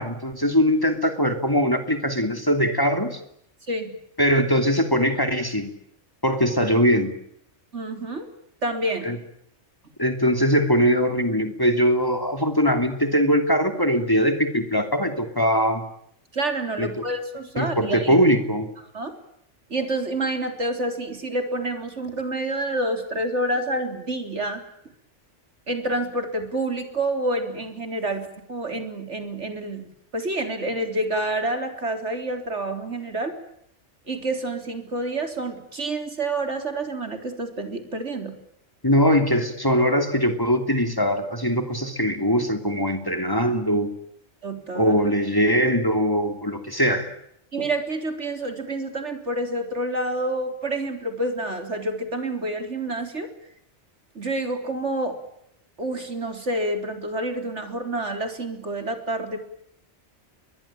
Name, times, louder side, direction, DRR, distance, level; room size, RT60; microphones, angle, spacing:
voice 1, 0.0-3.2 4.2-5.7 6.2-7.1 9.0-9.2 10.0-15.8 16.8-16.9 17.6-18.7 38.8-43.9 44.7-47.1, equal, 20° left, 6 dB, 2.9 m, -21 dB
voice 2, 7.7-8.3 8.6-9.1 16.3-18.2 18.9-19.1 19.7-24.6 25.7-33.4 34.1-38.4 44.4-44.9 47.5-53.3 54.1-55.2 55.8-59.4, right 1 dB, 75° right, 6 dB, 4.2 m, -28 dB
30.0 x 22.5 x 8.9 m, 0.74 s
omnidirectional pair, 1.2 m